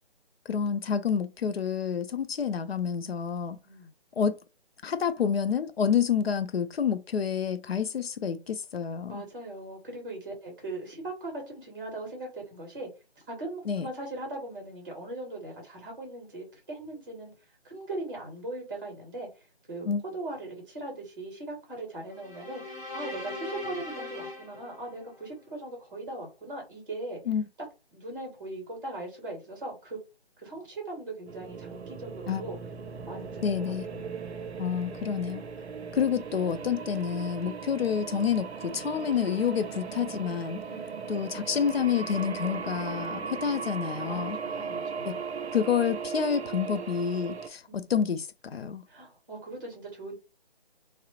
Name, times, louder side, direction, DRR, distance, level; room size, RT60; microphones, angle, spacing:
voice 1, 0.5-3.6 4.2-4.4 4.8-9.2 13.7-13.9 19.8-20.0 27.3-27.4 32.3-32.4 33.4-33.9 34.6-35.4 35.9-40.6 41.1-44.4 45.1-45.2 45.5-48.8, left 7 dB, 70° left, 0.5 m, -28 dB
voice 2, 9.1-12.9 13.3-17.3 17.6-19.3 19.7-19.9 20.1-22.6 22.9-27.2 27.9-30.0 30.4-32.6 33.1-34.1 37.6-37.8 40.6-41.1 44.1-45.2 47.7-47.9 48.9-50.1, right 2 dB, 20° right, 0.8 m, -39 dB
sound 1, 22.1-25.5, left 2 dB, 15° left, 0.5 m, -40 dB
sound 2, 31.3-47.5, right 6 dB, 85° right, 0.6 m, -38 dB
2.8 x 2.0 x 2.8 m
figure-of-eight pair, 165°, 32 cm